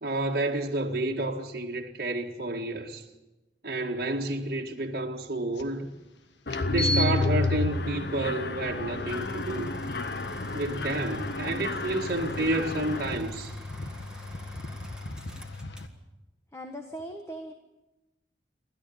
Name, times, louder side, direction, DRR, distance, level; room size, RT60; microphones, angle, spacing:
voice 1, 0.0-3.0 3.6-5.9 6.7-9.7 10.5-13.5, right 2 dB, 55° right, 1.9 m, -30 dB
sound 1, 5.6-5.7 6.5-15.9, left 1 dB, 80° left, 1.6 m, -38 dB
Mechanisms, 6.5-13.2, left 2 dB, 60° left, 0.9 m, -31 dB
sound 2, 9.1-16.0, right 2 dB, 5° right, 1.9 m, -49 dB
voice 2, 16.5-17.5, right 1 dB, 15° left, 1.5 m, -39 dB
29.0 x 13.0 x 8.6 m
head